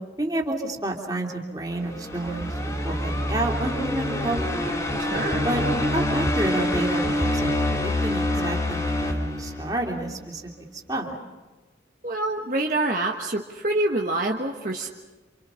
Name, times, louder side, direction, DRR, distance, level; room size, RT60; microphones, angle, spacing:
voice 1, 0.2-2.5 2.8-4.8 5.4-5.6 5.9-7.5 7.8-10.5 10.9-11.2, right 1 dB, 20° right, 0 dB, 3.0 m, -29 dB
sound 1, 1.7-10.0, left 1 dB, 20° left, 3.0 m, -26 dB
voice 2, 5.1-5.5 12.0-14.9, right 2 dB, 45° right, 1 dB, 1.3 m, -26 dB
29.0 x 27.0 x 5.7 m, 1.2 s
head